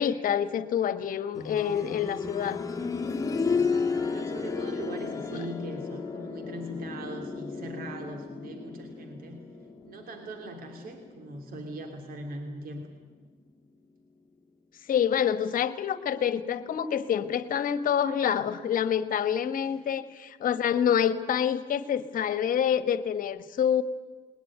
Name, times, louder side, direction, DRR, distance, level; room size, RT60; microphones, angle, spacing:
voice 1, 0.0-2.6 14.9-23.8, left 8 dB, 55° left, 12 dB, 1.5 m, -27 dB
sound 1, 1.4-12.1 13.5-13.6, left 4 dB, 20° left, 2.2 m, -33 dB
voice 2, 3.5-9.4 9.8-12.9 19.5-19.8, right 1 dB, 60° right, 5 dB, 3.0 m, -41 dB
21.0 x 20.0 x 9.6 m, 1.4 s
cardioid pair, 110°, 17 cm